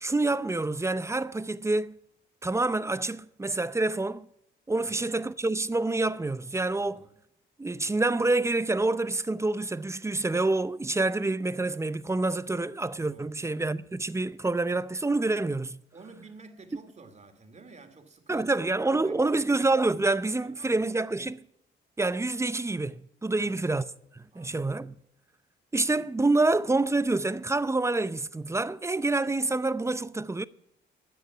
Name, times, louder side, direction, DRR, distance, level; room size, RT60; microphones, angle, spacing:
voice 1, 0.0-2.0 2.4-4.2 4.7-7.0 7.6-15.8 18.3-21.4 22.0-23.9 24.2-24.9 25.7-30.5, right 2 dB, 15° right, 0.6 m, -27 dB
voice 2, 4.8-5.1 6.8-7.2 13.1-13.4 15.9-18.5 18.9-19.5 19.9-20.0 20.4-20.8 23.3-23.7 24.3-24.7, right 4 dB, 35° right, 2.5 m, -51 dB
13.5 x 9.4 x 5.8 m
cardioid pair, 90°, 20 cm